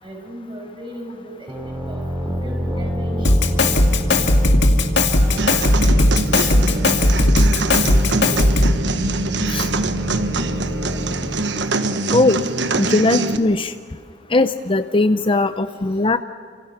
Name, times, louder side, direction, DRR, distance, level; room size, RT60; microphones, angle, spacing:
voice 1, 0.0-3.3 3.8-4.8 5.2-7.7 10.2-11.3, equal, 30° right, 1 dB, 6.0 m, -38 dB
sound 1, 1.5-13.0, right 1 dB, 15° right, 2.7 m, -28 dB
Drum kit, 3.2-8.9, left 1 dB, 70° left, 2.2 m, -16 dB
sound 2, 5.4-13.4, right 3 dB, 75° right, 1.3 m, -24 dB
voice 2, 12.8-13.7 14.3-16.2, left 2 dB, 30° left, 10 dB, 0.6 m, -18 dB
30.0 x 27.0 x 6.0 m, 2.1 s
head